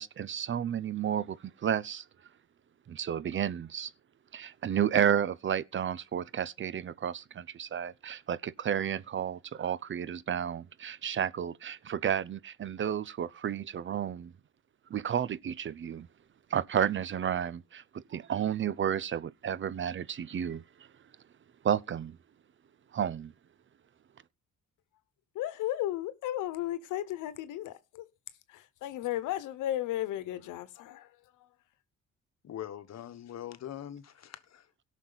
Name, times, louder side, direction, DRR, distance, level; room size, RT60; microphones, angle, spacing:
voice 1, 0.0-2.0 2.9-3.9 4.3-14.3 14.9-16.1 16.5-20.6 21.6-22.2 22.9-23.3, right 9 dB, 40° right, 0.6 m, -32 dB
voice 2, 25.3-28.1 28.5-31.5, left 13 dB, 90° left, 1.1 m, -35 dB
voice 3, 32.4-34.8, left 11 dB, 60° left, 1.2 m, -43 dB
17.0 x 6.3 x 4.0 m
cardioid pair, 90°, 30 cm